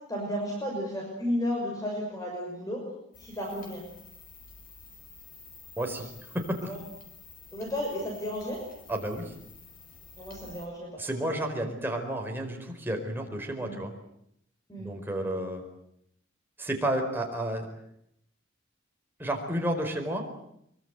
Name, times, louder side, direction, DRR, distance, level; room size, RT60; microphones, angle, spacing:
voice 1, 0.1-2.8 3.2-3.8 6.6-6.8 7.5-8.6 10.2-11.0 13.6-13.8 14.7-15.3, equal, 20° left, 0 dB, 5.9 m, -33 dB
sound 1, 3.1-10.7, left 3 dB, 45° left, 5.4 m, -51 dB
voice 2, 5.8-6.7 8.9-9.3 11.0-13.9 14.8-15.6 16.6-17.6 19.2-20.2, right 1 dB, 10° right, 2 dB, 4.7 m, -31 dB
24.0 x 24.0 x 8.2 m, 0.75 s
head